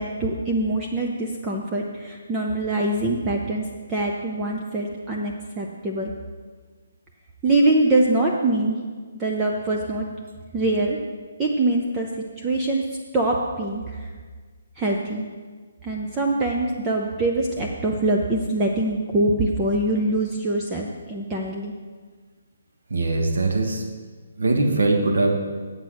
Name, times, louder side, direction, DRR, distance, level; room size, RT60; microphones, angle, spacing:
voice 1, 0.0-6.1 7.4-8.8 9.2-10.1 10.5-11.0 11.4-12.1 12.4-12.8 13.1-14.1 14.8-15.2 15.8-21.7, right 2 dB, 10° right, -1 dB, 0.6 m, -24 dB
voice 2, 22.9-23.8 24.4-25.3, right 2 dB, 90° right, 3 dB, 1.5 m, -21 dB
8.1 x 8.1 x 6.3 m, 1.5 s
hypercardioid pair, 170°, 0 cm